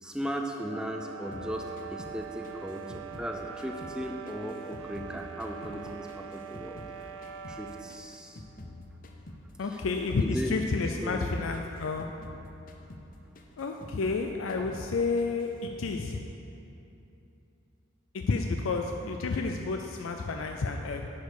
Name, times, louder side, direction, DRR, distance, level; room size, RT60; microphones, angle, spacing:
voice 1, 0.0-6.8 7.5-8.4 9.7-9.8 10.2-10.5 11.0-11.2, equal, 5° right, 2 dB, 0.5 m, -37 dB
sound 1, 0.5-8.0, right 8 dB, 85° right, 0.5 m, -43 dB
sound 2, 1.3-4.0 4.3-7.0 7.2-10.6 10.8-11.3 11.5-14.2 14.5-14.9 15.2-15.8, left 1 dB, 40° left, 0.7 m, -48 dB
voice 2, 9.6-12.1 13.6-16.2 18.1-21.1, left 3 dB, 90° left, 3 dB, 0.5 m, -30 dB
10.0 x 5.2 x 6.6 m, 2.8 s
head